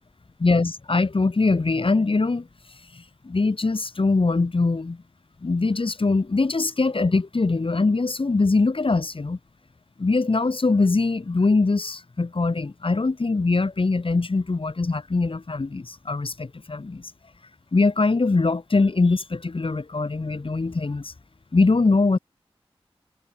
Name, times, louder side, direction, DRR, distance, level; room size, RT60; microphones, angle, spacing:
voice 1, 0.4-2.5 2.9-5.0 5.4-9.4 10.0-17.1 17.7-21.1 21.5-22.2, left 3 dB, 55° left, 3.2 m, -22 dB
cardioid pair, 40°, 11 cm